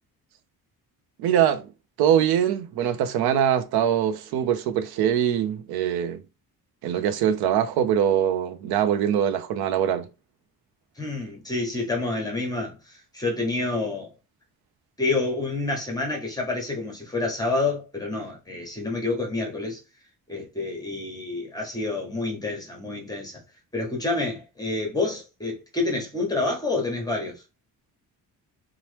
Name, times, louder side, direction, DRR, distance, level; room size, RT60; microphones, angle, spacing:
voice 1, 1.2-1.7 2.0-6.2 6.8-10.1, right 9 dB, 90° right, 0.6 m, -23 dB
voice 2, 11.0-14.1 15.0-19.8 20.3-23.4 23.7-27.4, left 3 dB, 10° left, 0.7 m, -28 dB
2.9 x 2.1 x 3.2 m
cardioid pair, 155°, 37 cm